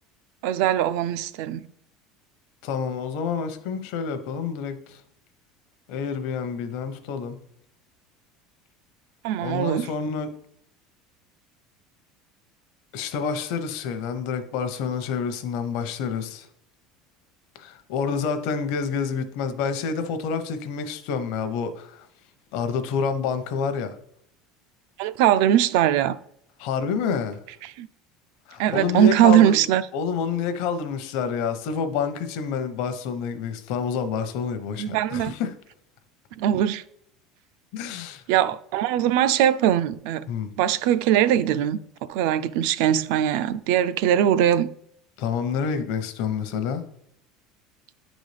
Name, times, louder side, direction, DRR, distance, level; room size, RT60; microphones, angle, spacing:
voice 1, 0.4-1.6 9.2-9.9 25.0-26.1 27.6-27.9 28.6-29.8 34.8-35.3 36.4-36.8 38.3-40.3 40.6-41.8 42.1-44.7, right 11 dB, 60° right, 0.3 m, -21 dB
voice 2, 2.6-5.0 5.9-7.4 9.4-10.3 12.9-16.5 17.6-22.1 22.5-24.0 26.6-27.4 28.5-29.6 29.9-35.5 37.7-38.2 40.3-40.5 45.2-46.8, left 6 dB, 55° left, 0.7 m, -28 dB
9.8 x 4.0 x 3.3 m
cardioid pair, 175°, 0 cm